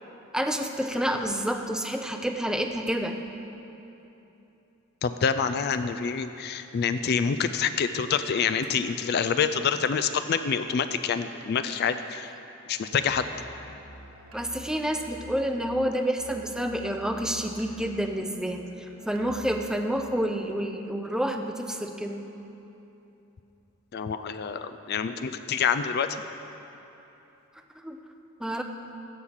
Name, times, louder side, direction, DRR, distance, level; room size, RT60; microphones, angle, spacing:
voice 1, 0.3-3.2 14.3-18.7 19.1-22.2 27.8-28.0 28.4-28.6, equal, 5° right, 4 dB, 0.5 m, -29 dB
voice 2, 5.0-12.3 12.7-13.3 23.9-26.1, left 6 dB, 50° left, 10 dB, 0.3 m, -27 dB
Musical instrument, 12.8-19.9, right 1 dB, 70° right, 1.3 m, -48 dB
15.5 x 6.3 x 5.7 m, 3.0 s
head